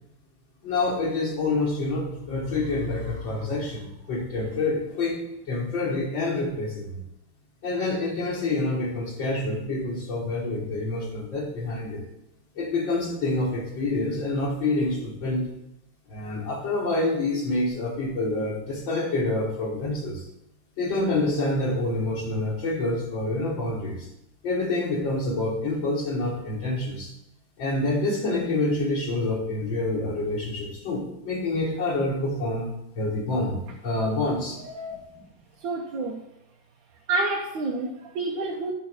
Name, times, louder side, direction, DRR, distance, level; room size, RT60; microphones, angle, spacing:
voice 1, 0.6-5.2 5.5-7.0 7.6-12.0 12.6-15.5 16.1-20.3 20.8-24.1 24.4-27.1 27.6-33.6 33.8-34.6, left 2 dB, 80° left, -4 dB, 2.4 m, -27 dB
voice 2, 34.7-35.3 35.6-36.3 37.1-38.7, right 2 dB, 75° right, 0 dB, 1.6 m, -29 dB
10.5 x 4.1 x 6.3 m, 0.84 s
omnidirectional pair, 2.1 m